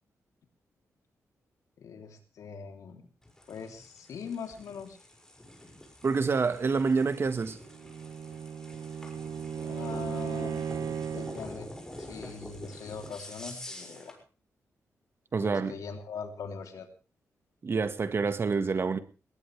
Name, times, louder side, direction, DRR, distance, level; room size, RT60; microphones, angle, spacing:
voice 1, 1.8-3.1 3.5-5.0 9.6-10.7 11.1-11.7 12.0-14.1 15.4-16.9, left 6 dB, 85° left, 3.3 m, -41 dB
sound 1, 3.2-14.2, left 1 dB, 10° left, 6.1 m, -47 dB
voice 2, 6.0-7.6 15.3-15.7 17.6-19.0, right 4 dB, 45° right, 1.6 m, -27 dB
Bowed string instrument, 7.6-11.5, right 7 dB, 75° right, 0.8 m, -36 dB
20.0 x 18.5 x 3.4 m
cardioid pair, 100°, 6 cm